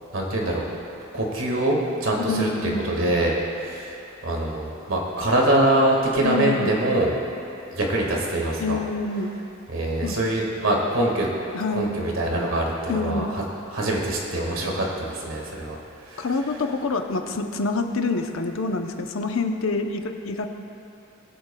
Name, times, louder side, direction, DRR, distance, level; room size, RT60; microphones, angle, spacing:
voice 1, 0.1-0.6 1.1-7.1 7.7-8.8 9.7-11.3 11.7-15.8 16.1-16.3, right 1 dB, 80° right, -2 dB, 1.8 m, -24 dB
voice 2, 2.3-2.8 6.2-6.8 8.6-9.3 10.0-10.2 11.5-11.9 12.9-13.3 16.2-20.5, left 3 dB, 85° left, 5 dB, 0.7 m, -26 dB
20.0 x 8.1 x 2.3 m, 2.8 s
head